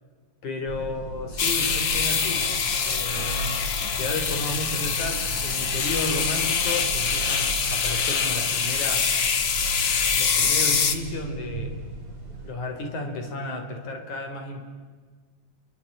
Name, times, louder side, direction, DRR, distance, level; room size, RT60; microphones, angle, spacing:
voice 1, 0.4-2.5 2.8-3.5 3.9-9.1 9.4-9.5 10.1-11.8 12.4-14.6, left 2 dB, 75° left, 5 dB, 5.3 m, -33 dB
sound 1, 0.7-12.5, right 2 dB, 45° right, 8.3 m, -36 dB
sound 2, 1.4-10.9, left 6 dB, 45° left, 2.0 m, -25 dB
29.0 x 23.5 x 8.7 m, 1.5 s
omnidirectional pair, 3.4 m